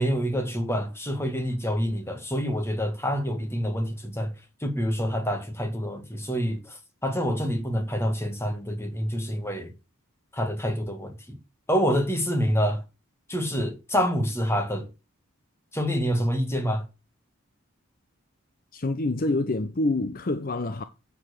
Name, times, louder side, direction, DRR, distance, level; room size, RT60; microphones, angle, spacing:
voice 1, 0.0-4.3 4.6-9.7 10.3-11.4 11.7-12.8 13.3-14.9 15.7-16.9, equal, 10° left, 1.8 m, -27 dB
voice 2, 18.7-20.8, left 2 dB, 40° left, 0.6 m, -26 dB
7.7 x 7.1 x 6.4 m
head